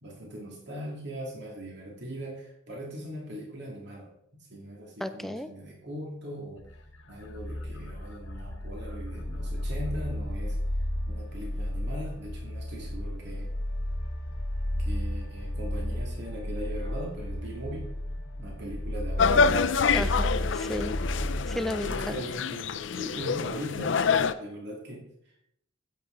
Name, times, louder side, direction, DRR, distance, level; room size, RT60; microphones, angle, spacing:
voice 1, 0.0-6.7 7.1-10.6 11.0-13.5 14.8-17.9 18.4-19.5 21.1-21.4 21.8-25.4, equal, 60° right, -1 dB, 2.3 m, -40 dB
voice 2, 5.0-5.5 19.9-21.1 21.6-22.1, left 1 dB, ahead, 10 dB, 0.4 m, -33 dB
sound 1, 6.6-22.2, left 1 dB, 85° left, 1.0 m, -33 dB
sound 2, 19.2-24.3, left 5 dB, 70° left, 0.5 m, -26 dB
10.0 x 8.7 x 3.8 m, 0.73 s
head